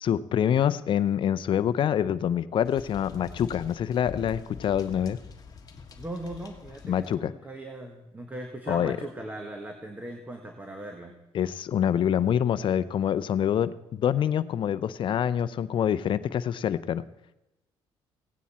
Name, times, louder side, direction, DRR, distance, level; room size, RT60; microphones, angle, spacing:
voice 1, 0.0-5.2 6.8-7.3 8.7-9.0 11.3-17.0, left 9 dB, 55° left, 15 dB, 0.6 m, -26 dB
sound 1, 2.7-7.1, left 5 dB, 40° left, 1.4 m, -45 dB
voice 2, 6.0-11.2, right 1 dB, 15° right, 4 dB, 1.4 m, -39 dB
16.5 x 9.3 x 4.3 m, 0.96 s
cardioid pair, 95°, 10 cm